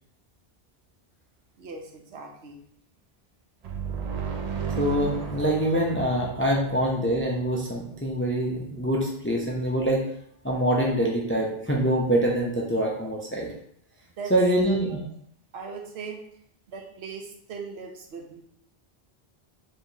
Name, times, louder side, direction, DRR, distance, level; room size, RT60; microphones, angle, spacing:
voice 1, 1.6-2.6 14.2-14.3 14.7-15.1 15.5-16.2 16.7-18.4, right 5 dB, 80° right, 2 dB, 1.0 m, -39 dB
sound 1, 3.6-7.4, right 6 dB, 55° right, 0.4 m, -34 dB
voice 2, 4.8-10.0 10.4-13.5 14.3-15.0, right 1 dB, 20° left, -1 dB, 0.4 m, -25 dB
4.6 x 3.1 x 2.6 m, 0.68 s
omnidirectional pair, 1.1 m